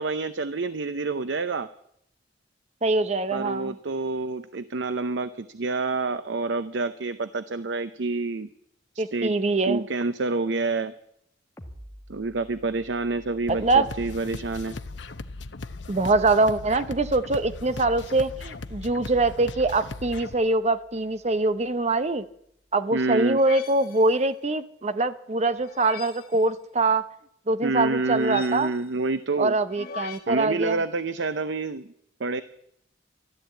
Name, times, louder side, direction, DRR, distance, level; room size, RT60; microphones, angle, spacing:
voice 1, 0.0-1.7 3.3-8.5 8.9-9.3 9.7-10.9 12.1-14.7 22.9-23.4 27.6-29.6 30.3-31.9 32.2-32.4, right 3 dB, 80° right, 12 dB, 0.7 m, -28 dB
voice 2, 2.8-3.8 9.0-9.9 13.5-13.9 15.9-22.2 22.7-27.0 27.5-28.7 29.4-30.8, right 2 dB, 40° right, 12 dB, 0.8 m, -23 dB
sound 1, 11.6-22.9, equal, 15° left, 1.6 m, -52 dB
sound 2, 13.5-20.3, left 3 dB, 80° left, 0.8 m, -38 dB
sound 3, 23.4-24.2 25.6-26.4 28.0-28.9 29.7-30.2, left 7 dB, 55° left, 1.8 m, -40 dB
13.5 x 13.0 x 8.3 m, 0.75 s
head